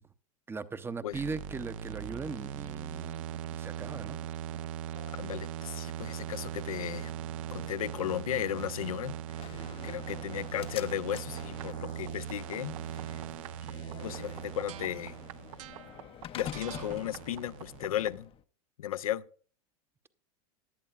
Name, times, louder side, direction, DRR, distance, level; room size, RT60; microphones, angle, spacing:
voice 1, 0.5-3.2 3.5-4.2, right 4 dB, 15° right, 0.6 m, -39 dB
sound 1, 1.1-18.2, right 10 dB, 70° right, 0.6 m, -40 dB
sound 2, 3.9-4.3 4.6-4.7 5.0-5.2 5.6-6.1 6.4-6.5 6.7-8.0 8.3-9.1 9.4-9.9 10.1-10.3 10.5-11.0 11.3-11.8 12.1-13.7 13.9-14.4 14.7-14.9, left 11 dB, 65° left, 1.5 m, -58 dB
voice 2, 5.2-7.1 7.5-13.2 14.0-15.2 16.3-18.3 18.8-19.2, left 11 dB, 80° left, 0.5 m, -35 dB
Slam, 9.4-18.4, left 10 dB, 30° left, 0.6 m, -47 dB
17.0 x 11.0 x 2.4 m
hypercardioid pair, 95°, 18 cm